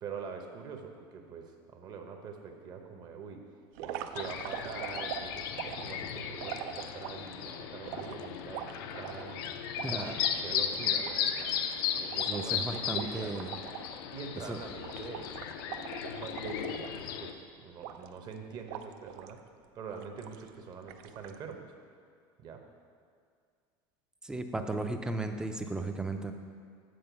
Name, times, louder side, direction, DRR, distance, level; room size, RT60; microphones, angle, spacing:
voice 1, 0.0-3.4 3.8-5.5 5.8-11.7 12.0-13.6 14.1-15.4 15.7-19.4 19.7-21.6 22.4-22.6, right 6 dB, 35° right, 4 dB, 0.8 m, -44 dB
sound 1, 3.7-7.3 7.9-10.4 10.7-10.8 11.0-14.0 14.2-14.5 14.8-17.3 17.8-18.3 18.7-19.4 19.9-20.5 20.9-21.4, right 10 dB, 70° right, 0.4 m, -43 dB
sound 2, 4.2-17.3, left 8 dB, 85° left, 0.5 m, -36 dB
voice 2, 9.8-10.1 12.3-13.5 14.5-14.6 24.2-26.3, right 2 dB, 5° right, 6 dB, 0.4 m, -35 dB
7.8 x 4.3 x 6.8 m, 2.1 s
cardioid pair, 150°, 12 cm